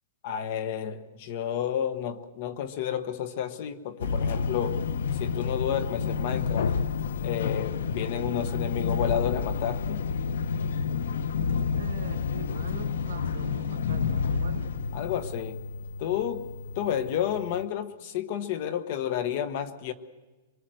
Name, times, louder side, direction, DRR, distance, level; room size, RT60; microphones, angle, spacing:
voice 1, 0.2-4.8 5.1-6.7 7.2-10.0 14.9-15.6 16.0-19.9, left 9 dB, 35° left, 12 dB, 1.2 m, -31 dB
sound 1, 4.0-17.6, left 5 dB, 75° left, 0.9 m, -30 dB
voice 2, 11.7-14.7, right 8 dB, 85° right, 6 dB, 2.7 m, -42 dB
24.0 x 23.5 x 7.9 m, 1.2 s
supercardioid pair, 175°, 0 cm